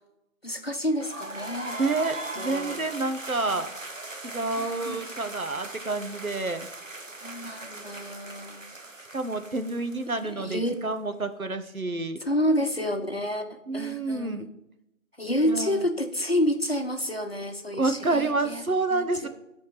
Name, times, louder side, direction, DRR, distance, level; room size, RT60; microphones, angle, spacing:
voice 1, 0.4-1.8 2.4-2.8 4.6-5.1 7.2-8.7 10.3-10.8 12.2-13.5 13.7-14.5 15.2-18.6 18.9-19.3, equal, 45° left, 5 dB, 0.9 m, -29 dB
sound 1, 1.0-10.8, right 2 dB, 65° right, 1.1 m, -39 dB
voice 2, 1.8-3.7 4.2-6.7 9.1-12.2 13.7-14.5 15.4-15.8 17.7-19.3, right 3 dB, 90° right, 8 dB, 1.1 m, -29 dB
11.0 x 4.4 x 5.7 m, 0.85 s
figure-of-eight pair, 175°, 41 cm